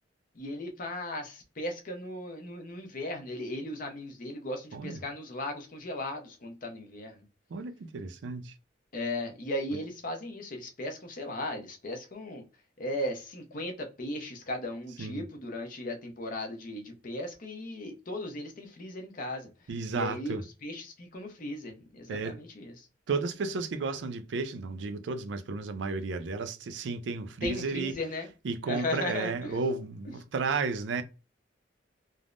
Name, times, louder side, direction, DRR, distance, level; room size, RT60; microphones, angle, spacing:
voice 1, 0.3-7.2 8.9-12.4 12.8-19.5 19.9-20.3 20.6-22.9 27.4-28.3 28.7-29.6, left 1 dB, 45° left, 0.7 m, -37 dB
voice 2, 7.5-8.5 9.7-9.8 15.0-15.3 19.7-20.4 22.1-22.4 23.1-28.0 28.4-31.0, right 4 dB, 70° right, 0.4 m, -33 dB
3.4 x 2.0 x 2.4 m
head